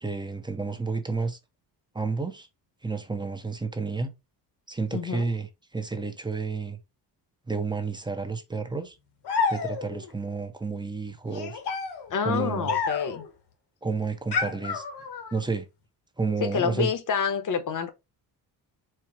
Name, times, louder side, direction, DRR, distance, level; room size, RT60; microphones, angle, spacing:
voice 1, 0.0-1.4 1.9-2.5 2.8-4.1 4.7-5.5 5.7-6.8 7.5-9.0 9.5-11.6 12.2-12.7 13.8-14.8 15.3-15.6 16.2-16.9, right 4 dB, 10° right, 0.8 m, -30 dB
voice 2, 4.9-5.2 12.1-13.2 16.4-17.9, left 6 dB, 45° left, 1.1 m, -28 dB
sound 1, 9.2-10.1 11.3-13.3 14.3-15.4, left 5 dB, 70° left, 1.4 m, -30 dB
4.5 x 2.3 x 4.6 m
cardioid pair, 115°, 42 cm